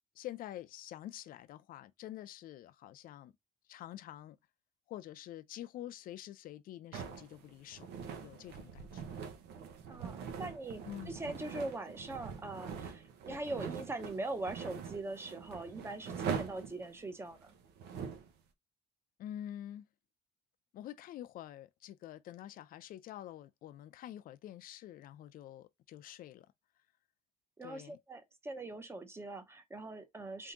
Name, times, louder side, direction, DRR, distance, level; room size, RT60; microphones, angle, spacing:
voice 1, 0.2-3.3 3.7-4.4 4.9-7.9 8.2-9.2 10.9-11.2 19.2-19.9 20.7-26.5 27.6-28.0, left 12 dB, 60° left, 0.5 m, -47 dB
sound 1, 6.9-18.3, right 7 dB, 90° right, 0.9 m, -43 dB
voice 2, 9.9-17.6 27.6-30.5, right 2 dB, 15° right, 0.8 m, -42 dB
3.6 x 2.7 x 3.8 m
cardioid pair, 140°, 16 cm